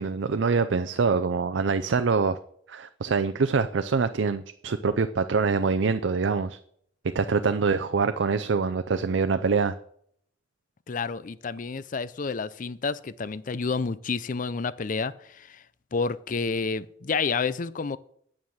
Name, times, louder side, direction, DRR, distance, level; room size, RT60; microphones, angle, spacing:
voice 1, 0.0-2.4 2.7-6.6 7.0-9.7, right 4 dB, 80° right, 10 dB, 0.5 m, -25 dB
voice 2, 10.9-15.6 15.9-18.0, left 4 dB, 45° left, 17 dB, 0.5 m, -29 dB
9.4 x 7.4 x 6.4 m, 0.65 s
head